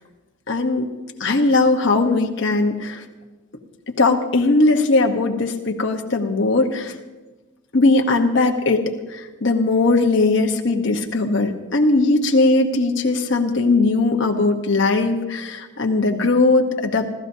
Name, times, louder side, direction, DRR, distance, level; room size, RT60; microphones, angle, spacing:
voice 1, 0.5-0.9 1.2-3.0 4.0-6.9 7.7-17.1, left 3 dB, 55° left, 3 dB, 1.0 m, -19 dB
27.5 x 13.5 x 2.7 m, 1.2 s
head